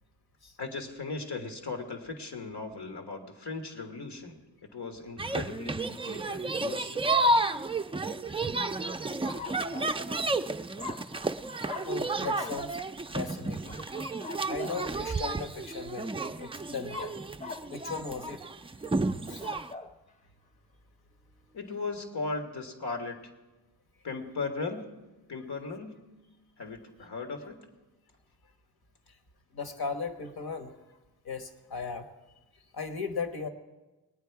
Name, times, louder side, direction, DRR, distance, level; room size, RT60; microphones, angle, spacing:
voice 1, 0.6-4.4 4.7-7.1 21.5-23.2 24.0-24.9 25.3-26.1 26.6-27.6, left 3 dB, 85° left, 4 dB, 1.7 m, -37 dB
sound 1, 5.2-19.7, right 2 dB, 15° right, 0.3 m, -31 dB
sound 2, 9.2-10.0 10.8-11.4 11.6-12.0 12.3-12.6 13.7-14.9 16.9-17.7 19.2-19.9, left 4 dB, 20° left, 0.6 m, -42 dB
voice 2, 9.3-9.9 11.8-12.8 13.1-17.2 17.7-18.4 19.3-19.5 29.5-30.8 31.2-32.1 32.7-33.5, left 5 dB, 70° left, 8 dB, 1.3 m, -38 dB
20.0 x 9.4 x 4.7 m, 1.1 s
wide cardioid pair, 75°, 39 cm